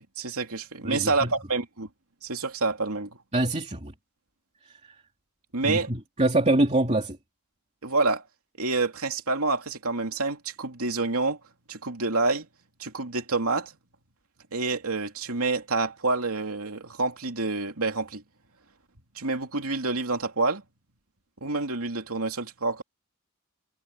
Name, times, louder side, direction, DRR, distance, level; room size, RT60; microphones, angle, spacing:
voice 1, 0.0-1.9 2.2-3.1 5.5-5.9 7.8-8.2 8.6-11.4 11.7-12.5 12.8-13.7 14.5-18.2 19.1-20.6 21.4-22.8, right 3 dB, 75° right, 3.0 m, -28 dB
voice 2, 0.8-1.3 3.3-3.9 4.7-4.8 5.6-7.2, right 2 dB, 30° right, 2.9 m, -25 dB
head